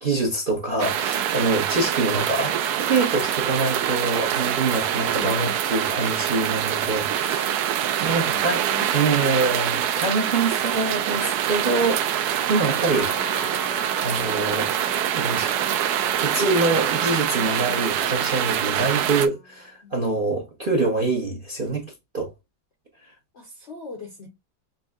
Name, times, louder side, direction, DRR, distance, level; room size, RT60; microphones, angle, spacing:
voice 1, 0.0-8.6 8.9-13.1 14.0-14.7 15.1-15.6 16.1-21.8 22.1-22.3, right 3 dB, 45° right, 0.7 m, -25 dB
sound 1, 0.8-19.3, right 10 dB, 75° right, 0.9 m, -25 dB
voice 2, 5.0-5.6 7.9-9.0 19.8-19.9 23.3-24.3, left 4 dB, 55° left, 0.7 m, -40 dB
Trumpet, 12.9-19.6, left 3 dB, 85° left, 1.8 m, -40 dB
5.3 x 2.6 x 2.3 m
omnidirectional pair, 2.1 m